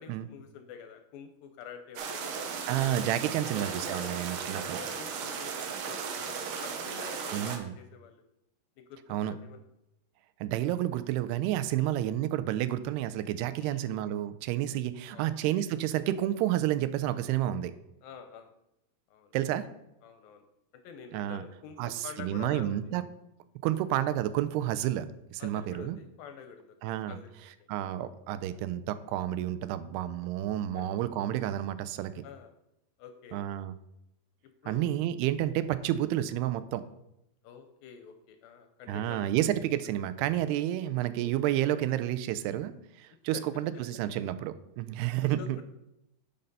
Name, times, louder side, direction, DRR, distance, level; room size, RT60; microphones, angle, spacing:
voice 1, 0.0-2.6 3.3-4.3 4.5-8.2 8.8-9.6 11.8-12.0 13.6-13.9 15.1-15.6 18.0-18.5 19.1-19.3 20.0-20.4 20.8-22.8 25.4-26.8 27.1-27.3 27.6-27.7 30.7-30.8 32.2-32.5 33.0-33.4 34.6-34.9 37.4-39.2 41.1-41.4 43.3-43.4 45.2-45.6, left 7 dB, 75° left, 7 dB, 2.3 m, -47 dB
sound 1, 2.0-7.6, right 6 dB, 70° right, 2.2 m, -36 dB
voice 2, 2.7-4.8 7.3-7.7 9.1-9.4 10.4-17.7 19.3-19.7 21.1-21.4 21.8-23.0 23.6-26.0 26.8-27.2 27.7-32.2 33.3-33.7 34.7-36.9 38.9-45.6, right 12 dB, 90° right, 13 dB, 2.6 m, -30 dB
9.1 x 5.6 x 5.4 m, 0.84 s
omnidirectional pair, 4.6 m